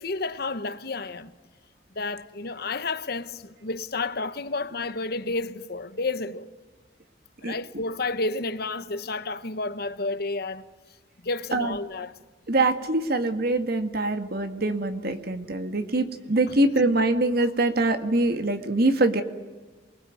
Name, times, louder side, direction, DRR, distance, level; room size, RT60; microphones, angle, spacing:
voice 1, 0.0-1.3 1.9-6.5 7.4-10.6 11.2-12.1 16.5-16.6, left 3 dB, 60° left, 1.2 m, -31 dB
voice 2, 12.5-19.2, right 2 dB, 55° right, 2.0 m, -24 dB
28.0 x 20.5 x 9.5 m
head